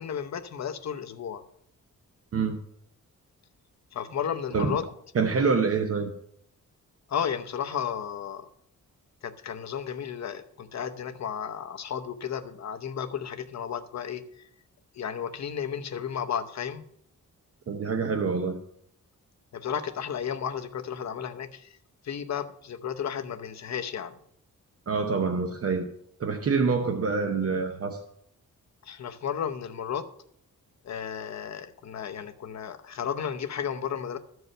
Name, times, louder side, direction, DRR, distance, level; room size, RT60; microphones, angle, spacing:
voice 1, 0.0-1.4 3.9-4.9 7.1-8.5 9.2-14.4 15.0-16.8 19.5-21.8 22.0-24.1 28.8-30.1 30.8-34.2, left 8 dB, 55° left, 7 dB, 0.8 m, -33 dB
voice 2, 5.1-6.1 17.7-18.6 24.9-25.9 26.2-28.0, right 5 dB, 45° right, 5 dB, 0.8 m, -26 dB
13.5 x 4.7 x 6.6 m, 0.70 s
wide cardioid pair, 175°, 33 cm